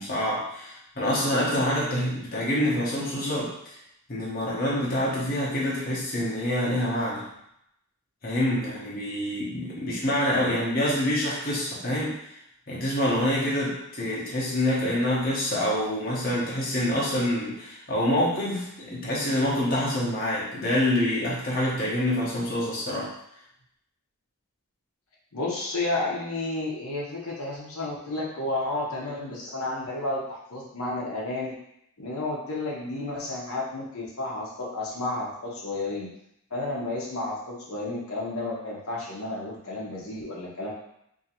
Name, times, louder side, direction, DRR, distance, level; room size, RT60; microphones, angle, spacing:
voice 1, 0.0-3.7 4.1-7.3 8.2-12.2 12.7-23.1, left 1 dB, 40° left, -6 dB, 1.0 m, -26 dB
voice 2, 25.3-31.5 32.0-36.1 36.5-40.7, left 2 dB, 75° left, -5 dB, 0.9 m, -31 dB
3.9 x 2.8 x 2.9 m, 0.76 s
head